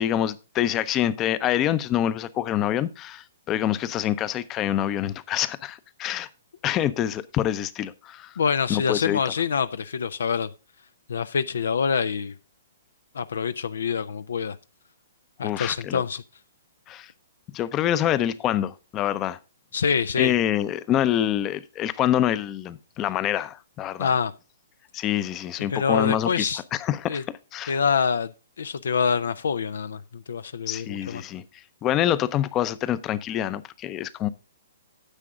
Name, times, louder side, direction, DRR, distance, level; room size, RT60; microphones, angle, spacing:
voice 1, 0.0-6.3 6.6-8.3 8.7-9.2 15.4-16.0 16.9-17.1 17.5-19.4 20.2-24.1 24.9-27.2 27.5-27.8 30.7-31.4 31.8-34.3, left 11 dB, 25° left, 0.6 m, -26 dB
voice 2, 8.4-10.5 11.1-12.3 13.1-14.6 15.4-16.2 19.7-20.3 24.0-24.3 25.7-26.6 27.1-27.2 27.7-28.3 28.6-31.2, left 6 dB, 75° left, 0.5 m, -25 dB
9.8 x 7.6 x 3.7 m
hypercardioid pair, 135°, 0 cm